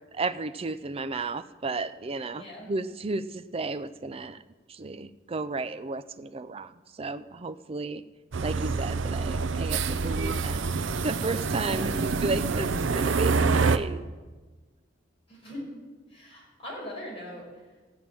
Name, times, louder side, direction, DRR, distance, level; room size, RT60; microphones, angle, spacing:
voice 1, 0.1-4.4 4.7-8.0 8.4-10.8 11.0-14.0, right 3 dB, 30° right, 12 dB, 0.5 m, -33 dB
voice 2, 2.3-2.7 11.6-12.0 15.3-15.7 16.1-17.5, equal, 30° left, -4 dB, 5.5 m, -40 dB
sound 1, 8.3-13.8, right 4 dB, 85° right, 0.6 m, -26 dB
15.0 x 5.9 x 8.7 m, 1.3 s
head